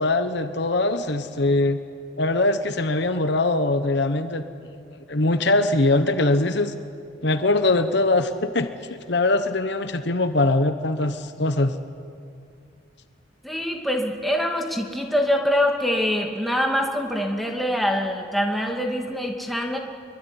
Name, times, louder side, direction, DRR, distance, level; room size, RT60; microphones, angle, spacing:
voice 1, 0.0-1.8 2.2-4.4 5.1-6.7 7.2-11.7, left 2 dB, 55° left, 9 dB, 1.0 m, -22 dB
voice 2, 13.4-19.8, equal, ahead, 0 dB, 2.5 m, -24 dB
25.0 x 23.5 x 9.9 m, 2.4 s
head